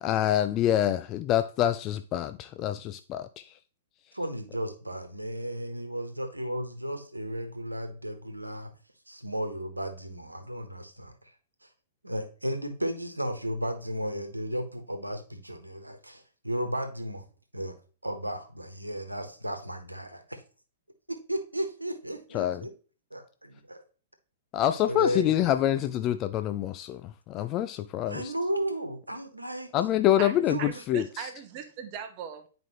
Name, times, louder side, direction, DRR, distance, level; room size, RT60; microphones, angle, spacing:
voice 1, 0.0-3.3 22.3-22.6 24.5-27.0 27.3-28.3 29.7-31.0, left 11 dB, 30° left, 11 dB, 0.4 m, -26 dB
voice 2, 4.1-8.7 9.1-11.3 12.0-17.2 17.5-17.7 18.0-20.4 21.1-22.7 23.1-23.8 24.9-25.3 28.1-29.7 30.5-30.6, right 1 dB, 90° right, 7 dB, 1.2 m, -34 dB
voice 3, 30.2-32.5, right 8 dB, 35° right, 7 dB, 0.9 m, -39 dB
9.6 x 5.0 x 3.1 m, 0.38 s
figure-of-eight pair, 110°, 0 cm